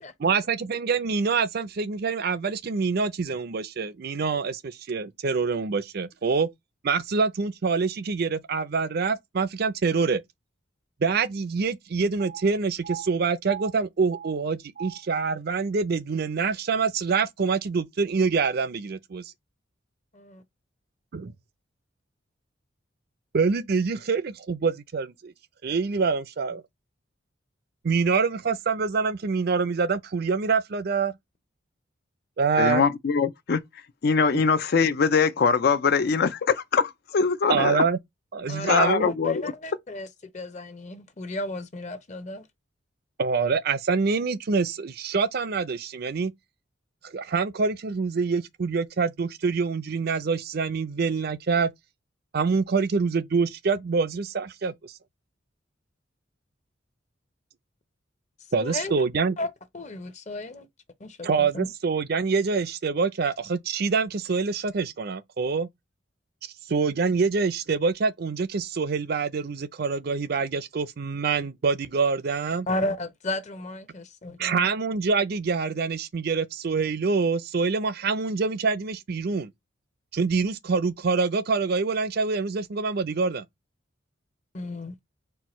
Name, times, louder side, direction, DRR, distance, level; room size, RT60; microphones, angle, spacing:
voice 1, 0.2-6.5 6.8-10.2 11.0-19.3 21.1-21.3 23.3-25.3 25.6-26.6 27.8-31.1 32.4-32.8 34.3-34.4 37.5-38.0 38.3-39.1 43.2-46.3 47.0-51.7 52.3-54.9 58.5-59.4 61.2-65.7 66.7-72.7 74.4-79.5 80.1-83.4, right 4 dB, 55° right, 0.5 m, -25 dB
voice 2, 32.6-33.6 34.0-37.8 38.7-39.5, left 5 dB, 55° left, 0.4 m, -22 dB
voice 3, 38.5-40.1 40.3-42.5 58.6-58.9 59.4-59.5 59.7-60.7 61.0-61.7 72.7-74.7 84.5-84.9, left 1 dB, 40° left, 0.8 m, -33 dB
4.5 x 2.3 x 4.2 m
head